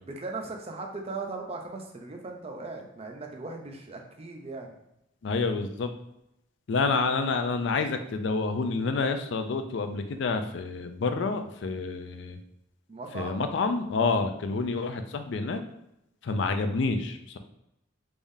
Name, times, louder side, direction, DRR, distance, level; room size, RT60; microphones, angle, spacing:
voice 1, 0.1-4.8 12.9-13.4 14.2-14.4, right 3 dB, 30° right, 2 dB, 0.5 m, -38 dB
voice 2, 5.2-5.9 6.7-12.4 13.1-15.6 16.2-17.4, left 4 dB, 65° left, 8 dB, 0.4 m, -28 dB
3.5 x 3.5 x 2.6 m, 0.83 s
head